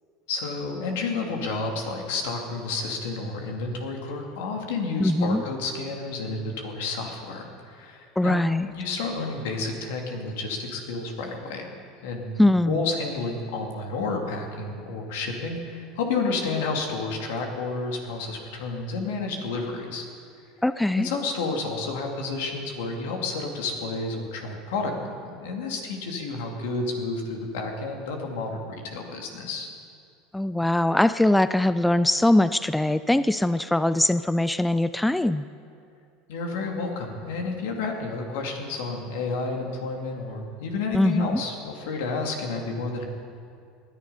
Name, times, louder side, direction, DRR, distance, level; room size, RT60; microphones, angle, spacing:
voice 1, 0.3-11.7 12.0-20.1 21.0-29.7 36.3-43.0, left 3 dB, 75° left, 2 dB, 2.5 m, -30 dB
voice 2, 5.0-5.4 8.2-8.7 12.4-12.9 20.6-21.1 30.3-35.4 40.9-41.4, left 1 dB, 5° left, 13 dB, 0.4 m, -22 dB
19.5 x 10.5 x 5.6 m, 2.3 s
hypercardioid pair, 90°, 0 cm